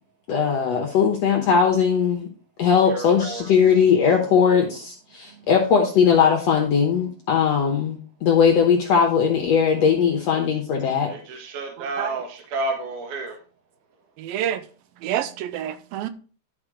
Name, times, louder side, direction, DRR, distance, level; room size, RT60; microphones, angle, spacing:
voice 1, 0.3-2.3 2.6-11.1, left 6 dB, 65° left, 1.7 m, -19 dB
voice 2, 2.9-3.5 11.1-13.4, right 2 dB, 65° right, 2.6 m, -31 dB
voice 3, 11.8-12.2 14.2-14.6 15.0-16.1, right 11 dB, 80° right, 2.4 m, -28 dB
11.5 x 4.6 x 5.0 m
omnidirectional pair, 4.2 m